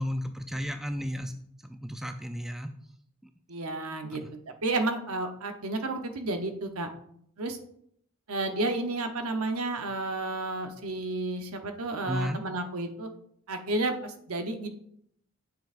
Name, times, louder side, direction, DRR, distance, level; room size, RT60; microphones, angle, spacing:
voice 1, 0.0-1.3 1.6-2.7 4.2-4.3 12.0-12.4, equal, ahead, 6 dB, 0.3 m, -33 dB
voice 2, 3.5-6.9 7.4-7.6 8.3-13.1 13.5-14.7, right 2 dB, 80° right, 6 dB, 0.9 m, -31 dB
9.4 x 6.8 x 2.5 m, 0.69 s
head